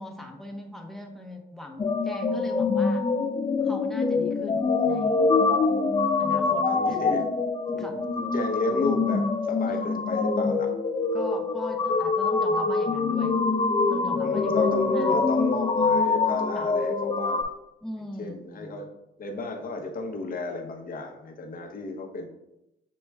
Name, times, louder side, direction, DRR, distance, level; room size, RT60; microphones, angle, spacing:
voice 1, 0.0-3.1 3.6-5.3 6.2-7.3 7.7-8.0 9.6-9.9 11.1-13.4 13.9-15.2 16.5-16.7 17.8-18.8, left 1 dB, ahead, 1 dB, 0.8 m, -39 dB
sound 1, 1.8-17.4, left 4 dB, 25° left, 0.4 m, -25 dB
voice 2, 6.7-7.2 7.7-10.7 14.2-17.5 18.2-18.9 19.2-22.3, left 3 dB, 45° left, 3 dB, 0.8 m, -33 dB
7.0 x 3.0 x 2.2 m, 0.89 s
cardioid pair, 90°, 20 cm